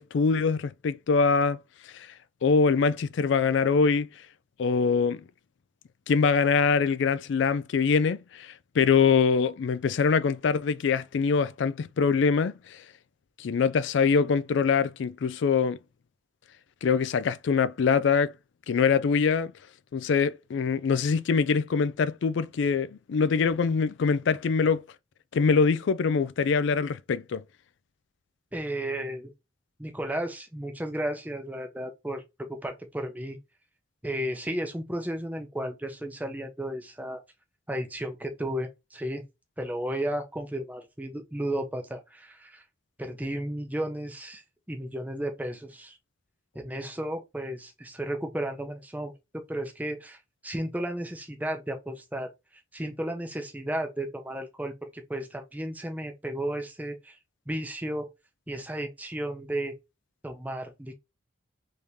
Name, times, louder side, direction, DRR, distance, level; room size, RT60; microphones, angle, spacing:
voice 1, 0.0-1.6 1.8-2.1 2.4-4.1 4.6-5.2 6.1-12.8 13.4-15.8 16.8-18.3 18.7-19.5 19.9-24.8 25.3-27.4, left 5 dB, 70° left, 0.3 m, -24 dB
voice 2, 28.5-29.3 29.8-33.4 34.0-37.2 37.7-39.2 39.6-42.6 43.0-44.4 44.7-46.0 46.5-52.3 52.7-57.2 57.5-58.1 58.5-59.8 60.2-60.9, right 1 dB, 10° right, 0.6 m, -33 dB
3.5 x 3.2 x 2.7 m
head